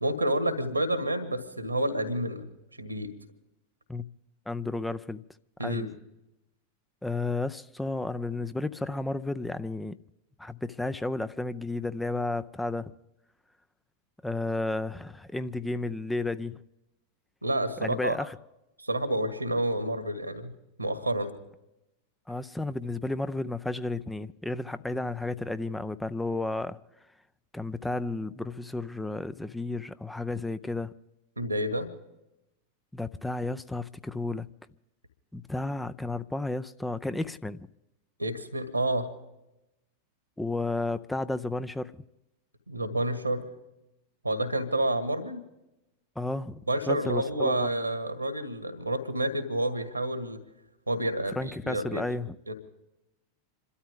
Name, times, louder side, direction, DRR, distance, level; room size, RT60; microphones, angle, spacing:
voice 1, 0.0-2.5 2.8-3.1 5.6-5.9 17.4-18.2 18.8-20.5 20.8-21.3 31.4-31.9 38.2-39.1 42.7-43.5 44.2-45.4 46.7-50.4 50.9-52.0 52.5-52.6, right 1 dB, 85° right, 1.8 m, -29 dB
voice 2, 4.5-5.2 5.6-5.9 7.0-10.0 10.4-12.9 14.2-16.6 17.8-18.4 22.3-26.8 27.5-30.9 32.9-34.5 35.3-37.7 40.4-42.0 46.2-46.6 46.9-47.7 51.4-52.3, left 2 dB, 5° left, 0.5 m, -32 dB
27.5 x 13.0 x 3.7 m
figure-of-eight pair, 90°, 0 cm